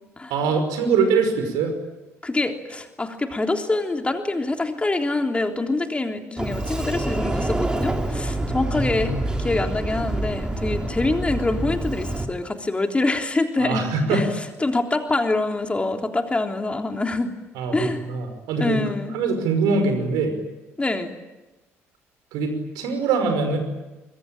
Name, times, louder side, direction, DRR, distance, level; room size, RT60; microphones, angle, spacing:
voice 1, 0.3-1.7 8.5-9.2 13.6-14.2 17.6-18.9 19.1-20.3 22.3-23.6, right 4 dB, 60° right, 6 dB, 5.5 m, -23 dB
voice 2, 2.2-9.1 9.4-14.3 14.6-17.3 17.7-18.1 18.6-19.2 20.8-21.1, left 2 dB, 15° left, 4 dB, 3.5 m, -25 dB
Sliding door, 6.4-12.3, right 1 dB, 10° right, 3.6 m, -27 dB
25.0 x 24.0 x 8.9 m, 1.1 s
figure-of-eight pair, 50°, 7 cm